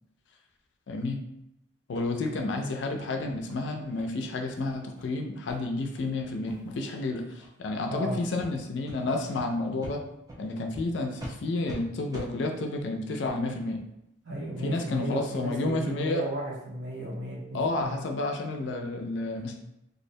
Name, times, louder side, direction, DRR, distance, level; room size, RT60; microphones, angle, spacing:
voice 1, 0.9-1.2 1.9-10.0 10.4-13.8 14.6-16.2 17.5-19.6, left 2 dB, 60° left, 3 dB, 0.3 m, -31 dB
sound 1, 1.9-2.1 2.5-2.6 3.0-3.1 3.5-3.6 4.0-4.1 4.5-4.6 4.9-5.1 5.5-5.6 6.0-6.1 6.4-6.8 7.4-7.5 7.9-8.0 8.4-8.5 8.9-9.0 9.4-9.5 9.8-9.9 10.3-10.4 10.7-10.8 11.2-11.3 11.7-11.8 12.1-12.3, right 1 dB, 20° right, 0.3 m, -42 dB
voice 2, 14.2-18.0, right 1 dB, 70° right, -5 dB, 0.8 m, -34 dB
2.4 x 2.1 x 2.6 m, 0.85 s
head